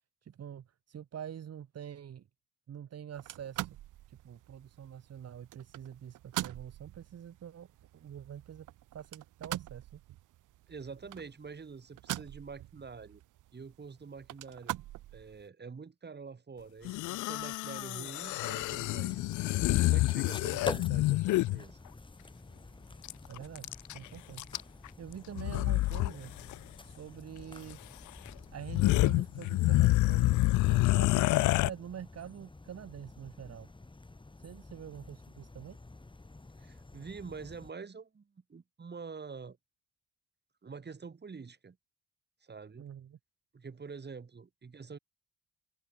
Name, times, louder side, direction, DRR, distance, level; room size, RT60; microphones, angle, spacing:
voice 1, 0.2-2.2 2.7-3.7 4.1-7.7 7.9-8.7 8.9-10.0 23.3-26.3 26.8-27.8 28.5-33.7 34.4-35.8 42.8-43.2, right 9 dB, 55° right, 2.5 m, -46 dB
sound 1, 3.1-15.5, right 15 dB, 85° right, 2.7 m, -44 dB
voice 2, 10.7-13.2 13.5-14.8 15.1-19.4 19.8-21.8 36.6-39.6 40.6-41.8 42.4-42.9 43.5-45.0, right 5 dB, 35° right, 6.1 m, -46 dB
sound 2, 16.8-21.6 23.0-23.1 23.4-24.0 24.4-24.9 25.4-26.1 26.4-26.6 27.7-27.8 28.3-28.4 28.6-31.7, left 18 dB, 75° left, 0.5 m, -28 dB
sound 3, 18.6-37.7, left 2 dB, 15° left, 4.4 m, -49 dB
cardioid pair, 90°, 30 cm